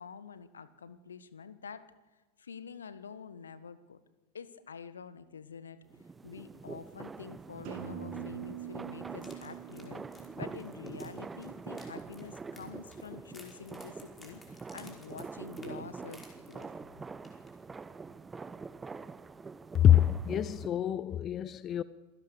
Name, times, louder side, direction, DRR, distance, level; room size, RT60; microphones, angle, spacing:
voice 1, 0.0-1.9 2.4-4.0 4.3-5.8 6.2-16.7, left 6 dB, 70° left, 1.4 m, -47 dB
sound 1, 5.9-20.7, right 4 dB, 15° right, 0.7 m, -45 dB
sound 2, 7.6-11.4, right 8 dB, 45° right, 3.4 m, -44 dB
sound 3, 9.1-16.9 17.2-17.5 17.8-17.9, left 2 dB, 15° left, 5.1 m, -57 dB
voice 2, 19.8-21.8, left 10 dB, 30° left, 0.7 m, -25 dB
26.5 x 16.5 x 6.8 m
figure-of-eight pair, 90°, 0 cm